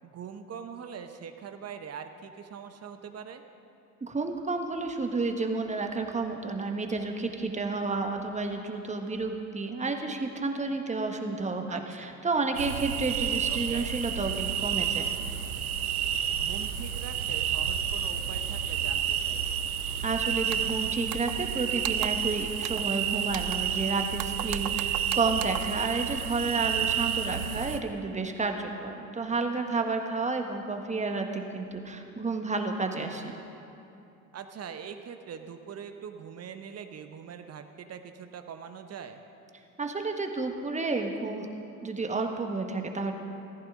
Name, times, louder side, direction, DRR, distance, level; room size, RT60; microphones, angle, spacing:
voice 1, 0.0-3.4 11.7-12.2 13.5-13.9 16.3-19.5 27.3-27.8 34.3-39.2, right 7 dB, 35° right, 8 dB, 0.9 m, -43 dB
voice 2, 4.0-15.1 20.0-33.3 39.8-41.5 41.8-43.1, right 3 dB, 15° right, 4 dB, 1.4 m, -31 dB
sound 1, 12.5-27.8, right 9 dB, 90° right, 0.7 m, -30 dB
sound 2, 20.5-20.7 21.1-21.5 21.8-22.3 22.6-22.9 23.3-23.8 24.2-25.8, right 15 dB, 55° right, 0.5 m, -38 dB
14.5 x 14.5 x 3.7 m, 2.8 s
hypercardioid pair, 65°, 42 cm